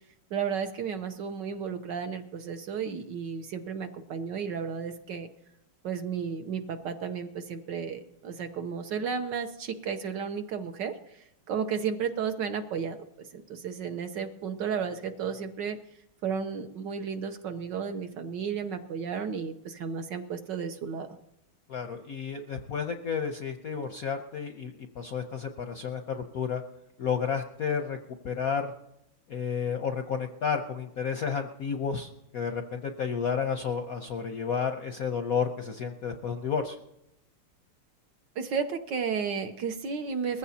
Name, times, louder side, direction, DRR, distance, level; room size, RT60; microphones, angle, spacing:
voice 1, 0.3-5.3 5.8-11.0 11.5-15.8 16.2-21.1 38.4-40.4, right 6 dB, 65° right, 7 dB, 1.3 m, -33 dB
voice 2, 21.7-26.6 27.0-28.0 28.2-28.7 29.3-36.8, left 6 dB, 65° left, 5 dB, 0.9 m, -31 dB
21.0 x 15.0 x 2.8 m, 0.82 s
omnidirectional pair, 2.4 m